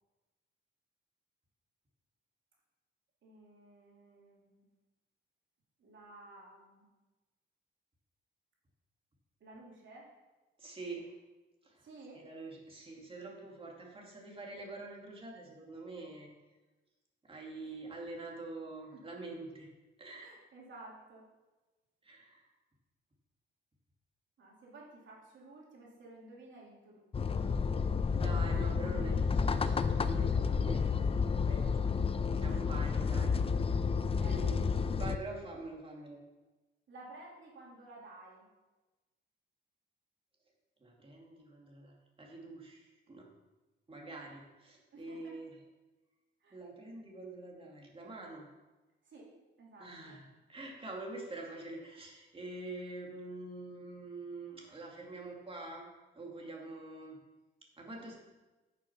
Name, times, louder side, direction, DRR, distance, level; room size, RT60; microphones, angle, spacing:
voice 1, 3.2-4.7 5.8-6.9 9.4-10.1 11.8-12.2 15.7-15.8 18.9-19.0 20.2-21.2 24.4-27.5 33.8-34.5 36.9-38.5 44.9-45.3 46.4-46.6 49.0-49.3 49.6-50.2 58.1-58.2, right 2 dB, 75° right, -3 dB, 3.0 m, -54 dB
voice 2, 10.6-11.1 11.6-11.9 12.1-16.3 17.2-19.7 20.0-20.3 22.0-22.4 28.1-31.9 32.3-33.4 34.3-34.6 34.9-36.2 40.8-43.3 43.9-45.6 46.5-48.5 49.8-55.9 56.1-57.2 57.8-58.2, right 2 dB, 25° right, -1 dB, 2.4 m, -46 dB
sound 1, 27.1-35.2, left 5 dB, 30° left, 0.5 m, -30 dB
9.5 x 6.5 x 5.8 m, 1.2 s
cardioid pair, 115°, 20 cm